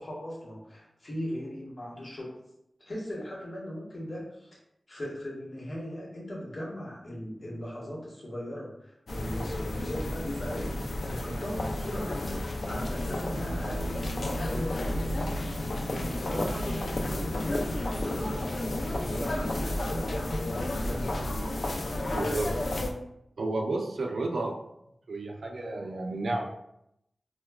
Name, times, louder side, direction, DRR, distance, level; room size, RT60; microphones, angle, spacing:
voice 1, 0.0-2.3 2.8-4.6 4.9-14.1 14.4-15.2 15.9-18.5 19.0-20.4 20.8-21.4, equal, 60° left, -4 dB, 1.1 m, -38 dB
sound 1, 9.1-22.9, left 1 dB, 75° left, 0.4 m, -31 dB
voice 2, 22.1-22.6 23.4-24.6 25.1-26.4, right 2 dB, 80° right, 2 dB, 0.4 m, -31 dB
4.5 x 2.1 x 2.2 m, 0.79 s
wide cardioid pair, 80°, 0 cm